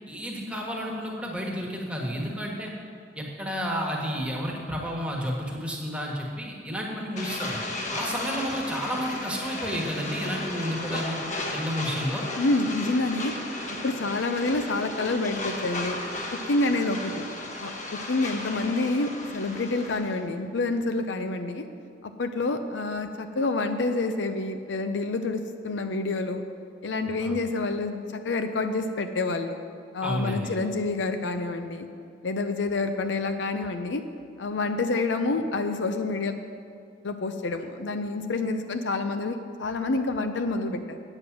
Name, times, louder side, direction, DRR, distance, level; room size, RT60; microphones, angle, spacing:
voice 1, 0.1-2.7 3.1-7.6 7.9-11.2 11.5-12.2 27.2-27.3 30.0-30.6, equal, 5° right, -2 dB, 1.3 m, -31 dB
sound 1, 7.2-20.2, left 2 dB, 40° left, 1.0 m, -35 dB
voice 2, 12.4-13.3 13.8-16.0 16.5-17.2 17.6-21.7 22.0-26.4 26.8-29.6 29.9-31.9 32.2-34.0 34.4-36.3 37.0-41.0, left 3 dB, 65° left, 7 dB, 0.6 m, -28 dB
8.8 x 7.8 x 6.0 m, 2.3 s
head